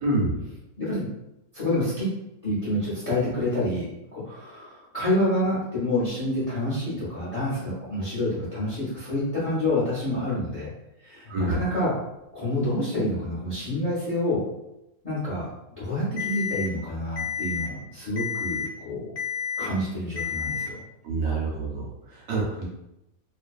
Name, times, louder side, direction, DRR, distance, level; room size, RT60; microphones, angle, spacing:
voice 1, 0.0-0.4 11.3-11.6 21.0-22.7, right 2 dB, 70° right, -2 dB, 0.9 m, -27 dB
voice 2, 0.8-1.1 1.5-2.1 2.4-3.8 4.1-10.7 11.0-11.9 12.3-14.4 15.0-15.5 15.8-19.1 19.6-20.7 22.6-22.7, left 1 dB, 35° left, -9 dB, 0.7 m, -28 dB
Alarm, 16.2-16.7 17.2-17.7 18.2-18.7 19.2-19.7 20.2-20.7, left 7 dB, 80° left, 1.2 m, -30 dB
2.5 x 2.2 x 2.3 m, 0.88 s
omnidirectional pair, 1.6 m